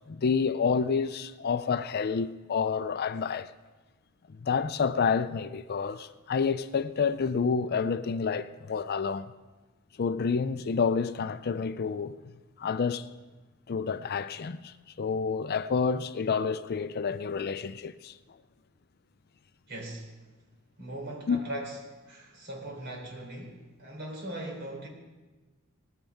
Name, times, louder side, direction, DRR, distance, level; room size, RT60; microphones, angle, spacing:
voice 1, 0.1-3.5 4.3-9.3 10.0-12.2 12.6-13.1 13.7-18.2 21.3-21.4, left 5 dB, 45° left, 0.4 m, -29 dB
voice 2, 19.7-20.1 20.8-21.8 22.1-24.9, right 1 dB, 50° right, 3.6 m, -39 dB
18.5 x 14.5 x 3.6 m
head